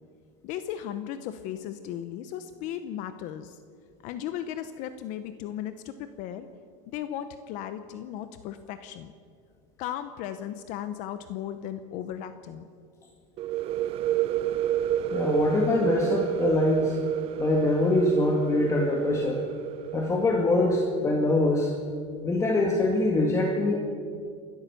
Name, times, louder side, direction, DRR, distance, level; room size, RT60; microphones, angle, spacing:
voice 1, 0.4-3.6 4.0-6.5 6.9-9.1 9.8-12.6, left 10 dB, 50° left, 10 dB, 0.9 m, -36 dB
sound 1, 13.4-21.0, right 12 dB, 35° right, 0.5 m, -30 dB
voice 2, 15.1-17.0 17.4-19.4 19.9-21.7 22.2-23.7, left 2 dB, 20° left, 0 dB, 1.9 m, -24 dB
29.5 x 13.0 x 6.9 m, 2.2 s
supercardioid pair, 150°, 16 cm